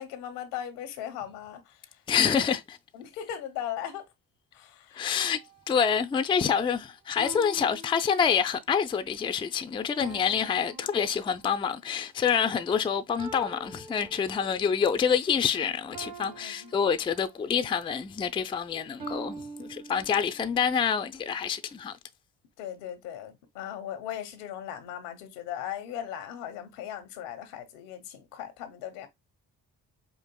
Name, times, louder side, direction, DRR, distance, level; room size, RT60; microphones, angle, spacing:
voice 1, 0.0-1.8 2.9-4.0 4.5-5.1 16.2-16.7 22.6-29.1, left 10 dB, 85° left, 0.8 m, -38 dB
voice 2, 2.1-2.8 4.9-5.4 5.7-21.9, left 7 dB, 15° left, 0.3 m, -27 dB
sound 1, 5.2-5.6 7.2-8.6 10.0-11.8 13.2-14.8 15.9-17.6 19.0-20.6, right 3 dB, 70° right, 1.8 m, -45 dB
5.1 x 2.5 x 2.2 m
hypercardioid pair, 45°, 46 cm